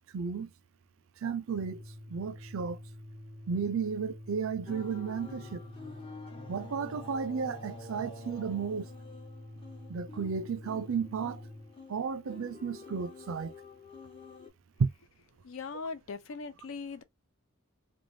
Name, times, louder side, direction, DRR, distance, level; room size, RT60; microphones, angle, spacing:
voice 1, 0.1-0.5 1.2-1.8 2.1-2.8 3.5-5.6 6.5-8.9 9.9-11.4 11.9-13.5 14.8-14.9, right 5 dB, 70° right, 0.4 m, -33 dB
Organ, 1.4-11.8, left 1 dB, 5° left, 1.1 m, -48 dB
sound 1, 4.7-14.5, left 3 dB, 25° left, 1.0 m, -49 dB
voice 2, 15.4-17.0, left 4 dB, 70° left, 0.5 m, -40 dB
3.2 x 2.2 x 2.6 m
head